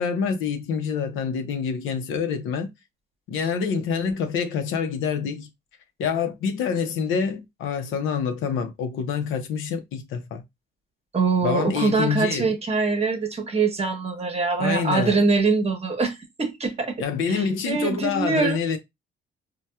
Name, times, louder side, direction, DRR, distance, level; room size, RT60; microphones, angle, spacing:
voice 1, 0.0-2.7 3.3-5.5 6.0-10.4 11.4-12.5 14.6-15.2 17.0-18.8, left 6 dB, 90° left, 0.7 m, -26 dB
voice 2, 11.1-17.0 17.3-18.6, right 4 dB, 30° right, 0.9 m, -23 dB
4.1 x 2.2 x 2.2 m
cardioid pair, 90°, 20 cm